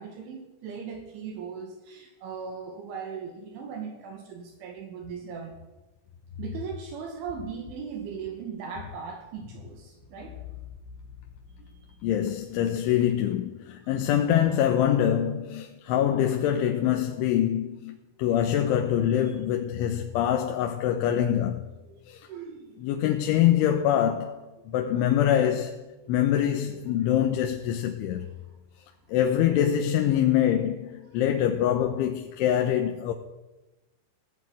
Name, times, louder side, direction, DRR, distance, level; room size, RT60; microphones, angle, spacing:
voice 1, 0.0-5.6 6.4-10.4 11.5-12.1 12.7-12.8 13.8-14.0 15.9-16.0 19.2-19.3 21.9-22.0 22.3-22.8 24.7-24.8 29.7-29.8, right 6 dB, 70° right, 4.5 m, -39 dB
voice 2, 12.0-21.6 22.1-22.3 22.8-24.4 24.7-25.8 26.1-28.3 29.1-33.1, left 10 dB, 80° left, 3.5 m, -24 dB
17.0 x 16.0 x 9.8 m
omnidirectional pair, 5.7 m